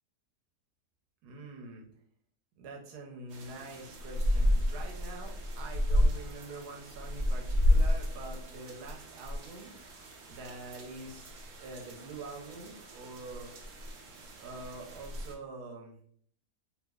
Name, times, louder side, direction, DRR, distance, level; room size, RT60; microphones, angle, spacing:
voice 1, 1.2-1.9 2.6-9.7 10.3-11.3 11.6-13.5 14.4-16.0, right 3 dB, 80° right, 1 dB, 1.2 m, -45 dB
sound 1, 3.3-15.3, left 1 dB, 65° right, 0.9 m, -32 dB
2.9 x 2.0 x 3.5 m, 0.62 s
omnidirectional pair, 1.7 m